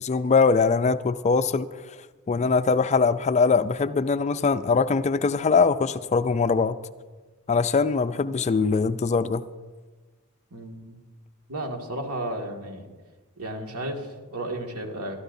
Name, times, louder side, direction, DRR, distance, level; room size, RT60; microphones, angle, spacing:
voice 1, 0.0-1.7 2.3-6.8 7.5-9.4, left 4 dB, 30° left, 12 dB, 0.4 m, -22 dB
voice 2, 10.5-11.0 11.5-12.9 13.4-15.2, right 1 dB, 75° right, 2 dB, 2.1 m, -33 dB
23.0 x 13.0 x 2.7 m, 1.3 s
head